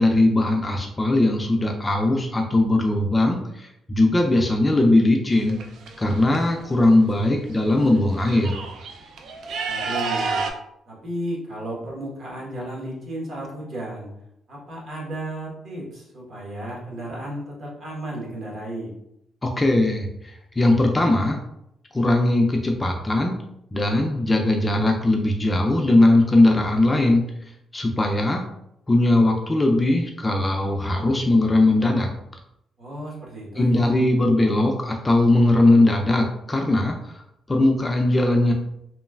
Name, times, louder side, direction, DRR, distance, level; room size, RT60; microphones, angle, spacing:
voice 1, 0.0-5.6 6.0-8.6 19.4-21.4 21.9-23.4 23.7-27.2 27.7-28.4 28.9-32.1 33.6-37.0 37.5-38.5, left 2 dB, 20° left, 2 dB, 0.3 m, -19 dB
sound 1, 5.3-6.4 7.5-7.6 7.9-10.5, right 4 dB, 80° right, 0.3 m, -30 dB
voice 2, 9.6-10.4 10.9-14.1 14.5-18.9 32.8-33.9, right 1 dB, 55° right, -3 dB, 1.1 m, -33 dB
3.0 x 2.3 x 2.2 m, 0.79 s
cardioid pair, 105°, 0 cm